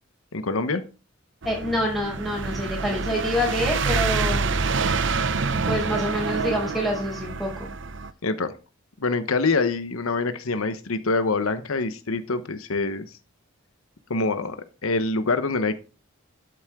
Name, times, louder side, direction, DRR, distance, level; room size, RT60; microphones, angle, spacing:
voice 1, 0.3-0.8 8.2-8.5 9.0-13.0 14.1-14.6 14.8-15.8, left 3 dB, 85° left, 10 dB, 1.0 m, -25 dB
voice 2, 1.4-4.7 5.5-7.7, left 1 dB, ahead, -3 dB, 6.0 m, -27 dB
sound 1, 1.4-8.1, right 4 dB, 60° right, 0.7 m, -27 dB
12.5 x 8.3 x 3.7 m, 0.33 s
head